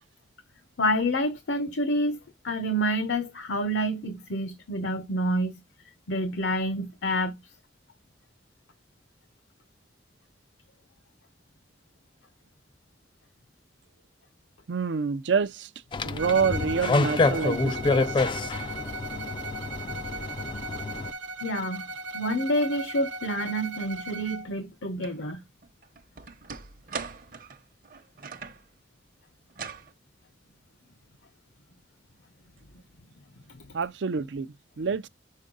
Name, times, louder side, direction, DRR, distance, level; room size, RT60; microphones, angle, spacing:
voice 1, 0.8-2.2 2.4-5.5 6.1-7.4 21.4-21.9 22.1-25.4 33.5-33.6, equal, 75° left, 0.8 m, -28 dB
voice 2, 14.7-15.7 16.0-18.0 33.7-35.1, right 5 dB, 75° right, 0.5 m, -27 dB
sound 1, 15.9-21.1, left 3 dB, 25° left, 0.3 m, -27 dB
Bowed string instrument, 16.2-24.5, right 2 dB, 90° right, 0.9 m, -37 dB
sound 2, 25.0-25.2 25.6-28.7 29.5-29.9, right 5 dB, 45° right, 0.8 m, -40 dB
6.4 x 4.5 x 3.8 m
head